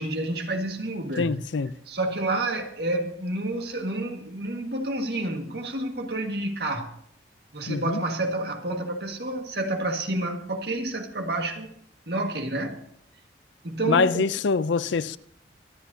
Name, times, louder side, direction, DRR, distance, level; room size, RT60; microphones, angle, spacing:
voice 1, 0.0-1.4 1.9-6.9 7.5-11.7 12.1-12.8 13.6-14.2, right 2 dB, 60° right, 1.8 m, -29 dB
voice 2, 1.2-1.7 7.7-8.0 13.9-15.2, left 4 dB, 85° left, 0.5 m, -24 dB
24.0 x 11.5 x 2.8 m
head